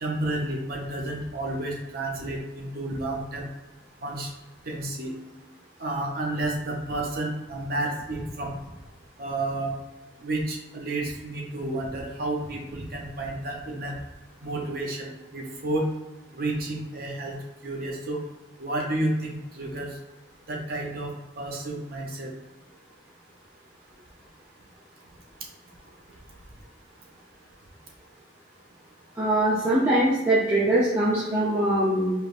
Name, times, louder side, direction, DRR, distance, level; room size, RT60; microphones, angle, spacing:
voice 1, 0.0-3.5 4.0-4.3 4.6-5.1 5.8-8.5 9.2-9.7 10.2-13.9 14.4-15.9 16.3-17.3 17.6-18.2 18.6-20.0 20.5-22.3, right 2 dB, 50° right, -1 dB, 0.6 m, -31 dB
voice 2, 29.2-32.1, right 1 dB, 15° right, -10 dB, 0.7 m, -22 dB
4.8 x 2.9 x 2.5 m, 1.1 s
head